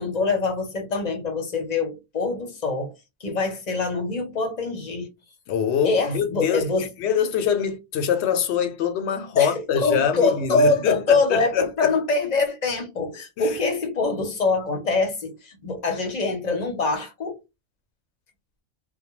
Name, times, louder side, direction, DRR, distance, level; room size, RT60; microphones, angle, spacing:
voice 1, 0.0-2.9 3.2-5.1 5.8-6.9 9.4-17.4, left 3 dB, 45° left, 0.7 m, -24 dB
voice 2, 5.5-11.9 13.4-13.6, left 7 dB, 75° left, 0.8 m, -24 dB
2.2 x 2.1 x 3.0 m
omnidirectional pair, 1.1 m